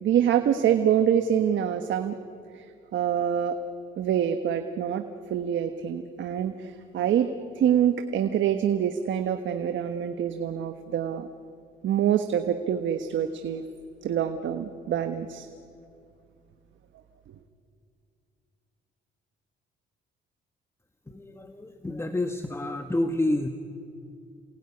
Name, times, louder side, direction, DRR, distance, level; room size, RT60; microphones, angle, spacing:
voice 1, 0.0-2.1 2.5-2.6 2.9-3.6 4.0-5.0 5.3-7.3 7.5-11.3 11.8-13.7 14.0-15.5, right 9 dB, 70° right, 7 dB, 1.4 m, -25 dB
voice 2, 21.1-23.5, left 1 dB, 15° left, 7 dB, 1.4 m, -29 dB
28.5 x 21.0 x 9.8 m, 2.5 s
cardioid pair, 90°, 20 cm